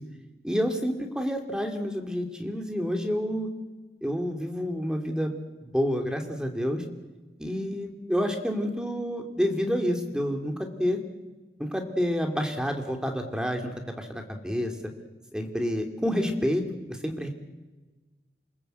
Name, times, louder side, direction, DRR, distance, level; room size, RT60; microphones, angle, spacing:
voice 1, 0.4-3.5 4.0-5.4 5.6-6.8 7.4-10.5 10.8-11.0 11.6-14.7 15.3-16.6 16.9-17.3, equal, 5° right, 4 dB, 2.7 m, -28 dB
28.0 x 20.0 x 8.1 m, 1.2 s
head